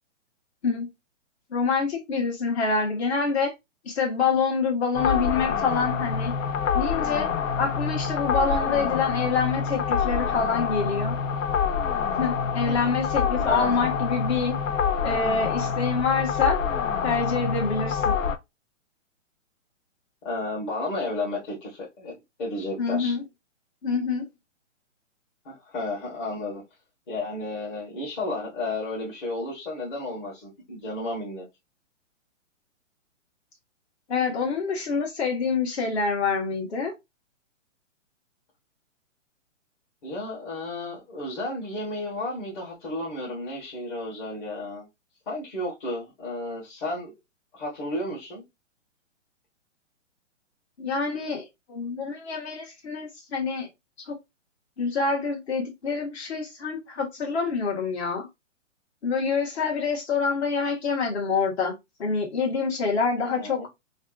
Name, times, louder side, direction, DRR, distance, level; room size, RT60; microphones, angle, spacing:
voice 1, 1.5-3.5 3.8-6.3 6.7-7.3 7.6-11.1 12.2-14.5 15.0-16.6 17.0-18.1 22.8-23.2 23.8-24.3 34.1-36.9 50.8-53.7 54.0-54.2 54.8-58.3 59.0-61.7 62.0-63.6, left 5 dB, 55° left, 1.6 m, -26 dB
sound 1, 4.9-18.4, left 6 dB, 85° left, 0.6 m, -26 dB
voice 2, 20.2-23.2 25.4-26.6 27.1-31.4 40.0-44.9 45.3-47.1 47.5-48.4 63.2-63.7, left 2 dB, 40° left, 1.6 m, -32 dB
3.3 x 2.5 x 2.4 m
hypercardioid pair, 145°, 38 cm